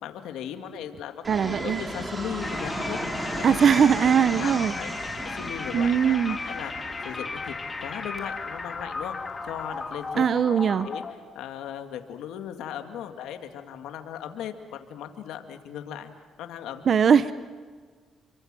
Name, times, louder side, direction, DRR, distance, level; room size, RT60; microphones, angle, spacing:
voice 1, 0.0-3.0 3.4-3.5 4.0-4.9 5.2-6.7 7.0-7.5 7.8-9.2 9.4-10.6 10.8-11.0 11.3-16.1 16.4-16.9, left 10 dB, 90° left, 6 dB, 2.2 m, -37 dB
Fixed-wing aircraft airplane, 1.2-10.3, right 1 dB, 20° right, 4.3 m, -36 dB
voice 2, 1.3-1.8 3.4-4.7 5.7-6.4 10.2-10.9 16.9-17.3, right 7 dB, 55° right, 14 dB, 0.8 m, -20 dB
sound 1, 2.4-11.1, left 4 dB, 30° left, 3.2 m, -35 dB
28.5 x 24.5 x 7.7 m, 1.5 s
cardioid pair, 90°, 0 cm